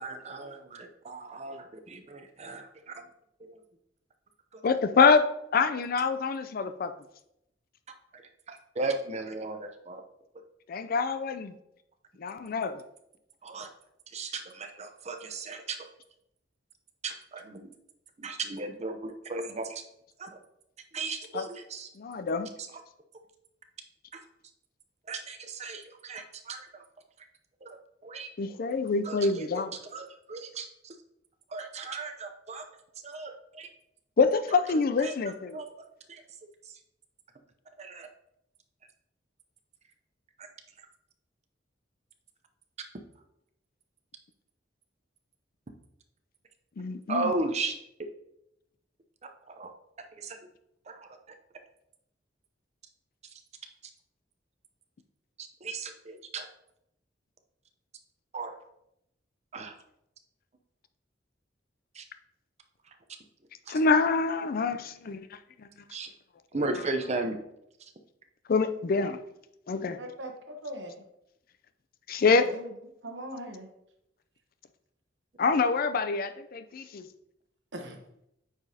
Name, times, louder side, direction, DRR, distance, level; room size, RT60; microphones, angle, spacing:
voice 1, 0.0-3.0 3.4-3.6 4.5-4.6 8.1-8.2 8.5-10.0 13.4-13.7 14.1-15.8 17.0-17.7 18.2-19.8 20.2-20.4 20.9-21.9 22.7-22.8 24.1-24.2 25.1-26.8 27.6-28.3 29.0-31.0 31.5-32.7 33.0-33.7 34.7-35.1 35.5-35.7 36.1-36.2 36.6-36.7 37.8-38.1 40.4-40.5 47.1-47.7 49.5-49.7 50.1-50.4 50.9-51.1 53.3-53.4 55.4-56.5 58.3-58.5 59.5-59.8 61.9-62.1 63.7-63.8 65.9-66.1 66.5-67.4, right 3 dB, 40° right, 6 dB, 0.7 m, -36 dB
voice 2, 4.6-5.3 5.5-6.9 10.7-11.5 12.2-12.8 21.3-21.4 22.0-22.5 28.4-29.7 34.2-35.6 46.8-47.3 63.7-65.2 65.6-65.7 68.5-69.2 69.7-70.0 72.1-72.5 75.4-77.0, left 4 dB, 55° left, 10 dB, 0.4 m, -26 dB
voice 3, 70.0-70.9 72.5-72.7 73.0-73.7 77.7-78.0, right 1 dB, 80° right, 4 dB, 1.0 m, -40 dB
8.7 x 4.9 x 2.8 m, 0.80 s
head